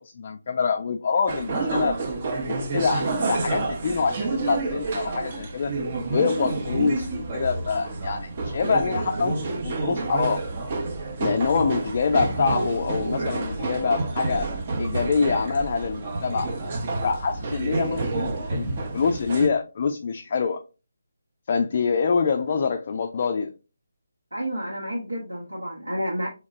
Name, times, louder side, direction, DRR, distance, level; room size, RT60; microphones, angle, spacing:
voice 1, 0.0-2.0 2.5-5.7 6.1-10.4 11.2-14.5 14.8-16.5 17.0-20.6 21.5-23.5, left 5 dB, 40° left, 0.3 m, -25 dB
sound 1, 1.3-19.5, right 3 dB, 35° right, 0.6 m, -29 dB
voice 2, 24.3-26.3, equal, 85° right, 0.9 m, -30 dB
3.8 x 2.9 x 2.5 m
figure-of-eight pair, 150°, 0 cm